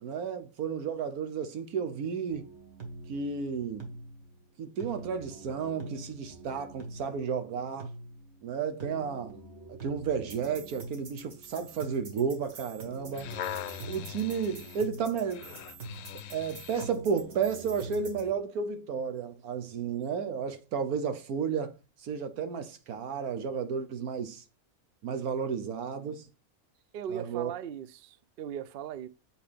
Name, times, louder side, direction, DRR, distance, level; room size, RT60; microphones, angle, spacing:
voice 1, 0.0-2.5 3.1-3.9 4.6-7.9 8.4-9.3 9.7-13.3 13.9-15.5 16.3-21.7 22.0-24.4 25.0-26.3 27.1-27.5, right 6 dB, 90° right, 1.4 m, -32 dB
sound 1, 2.3-18.3, right 2 dB, 50° right, 1.7 m, -45 dB
sound 2, 12.9-17.0 17.6-17.8, left 10 dB, 70° left, 0.9 m, -41 dB
voice 2, 26.9-29.1, right 9 dB, 65° right, 0.5 m, -38 dB
8.0 x 4.9 x 3.4 m
omnidirectional pair, 1.5 m